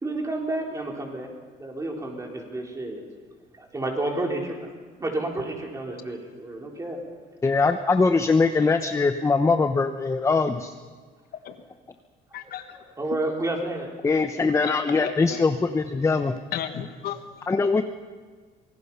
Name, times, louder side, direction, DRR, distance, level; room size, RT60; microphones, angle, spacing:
voice 1, 0.0-1.3 1.6-3.0 3.6-4.7 5.0-7.0 12.4-12.5 13.0-13.9, right 2 dB, 20° right, 0 dB, 4.1 m, -30 dB
voice 2, 7.4-10.7 14.0-16.3 17.5-17.8, left 4 dB, 15° left, 8 dB, 0.7 m, -22 dB
voice 3, 12.3-12.8 13.1-13.2 14.6-14.7 15.0-15.5 16.5-17.5, left 9 dB, 65° left, 8 dB, 1.4 m, -35 dB
25.0 x 18.0 x 5.7 m, 1.5 s
cardioid pair, 110°, 17 cm